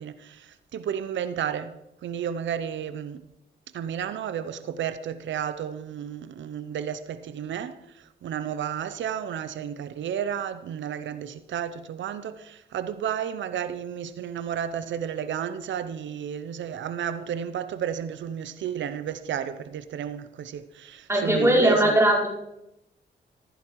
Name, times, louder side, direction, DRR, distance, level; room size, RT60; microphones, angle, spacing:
voice 1, 0.0-3.2 3.7-22.0, right 8 dB, 90° right, 0.8 m, -32 dB
voice 2, 21.1-22.3, right 1 dB, 15° right, 5.1 m, -20 dB
15.0 x 11.0 x 4.7 m
cardioid pair, 70°, 19 cm